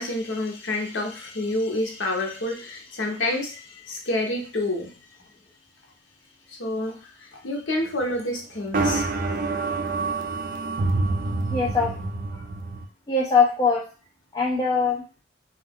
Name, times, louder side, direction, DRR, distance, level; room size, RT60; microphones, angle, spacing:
voice 1, 0.0-5.0 6.5-9.0, left 1 dB, 75° left, 1 dB, 0.8 m, -28 dB
sound 1, 8.7-12.9, right 3 dB, 45° right, 0.3 m, -27 dB
voice 2, 11.5-12.0 12.3-12.5 13.1-13.8 14.3-15.0, left 4 dB, 20° left, -4 dB, 0.4 m, -22 dB
2.4 x 2.2 x 3.5 m, 0.34 s
head